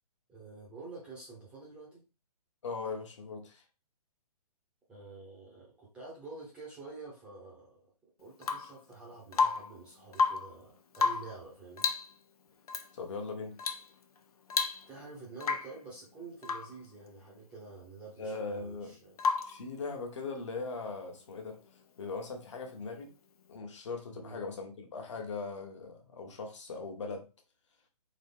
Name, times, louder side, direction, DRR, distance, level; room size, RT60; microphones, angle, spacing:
voice 1, 0.3-2.0 4.9-7.9 8.2-11.9 14.9-19.2 24.1-24.4, right 3 dB, 5° right, 0.7 m, -48 dB
voice 2, 2.6-3.6 12.9-13.6 18.2-18.9 19.4-21.6 22.0-23.1 23.5-27.3, left 4 dB, 45° left, 1.2 m, -39 dB
Rain / Water tap faucet / Drip, 8.4-8.8 9.3-9.8 10.1-10.6 10.9-11.4 11.8-12.1 12.7-12.9 13.6-13.9 14.2-14.3 14.5-15.1 15.4-15.8 16.4-16.8 19.2-19.6 21.5-21.6, left 5 dB, 65° left, 0.7 m, -31 dB
4.0 x 3.1 x 3.6 m
hypercardioid pair, 165°, 20 cm